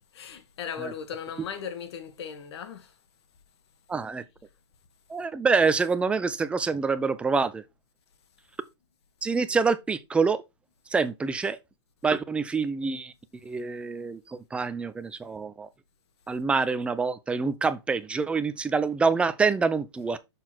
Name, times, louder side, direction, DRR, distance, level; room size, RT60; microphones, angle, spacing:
voice 1, 0.1-2.9, left 7 dB, 60° left, 1.5 m, -37 dB
voice 2, 3.9-4.2 5.1-7.6 9.2-10.4 10.9-11.6 12.0-13.1 13.4-15.7 16.3-20.2, right 4 dB, 5° right, 0.4 m, -26 dB
6.6 x 3.9 x 4.4 m
hypercardioid pair, 140°, 15 cm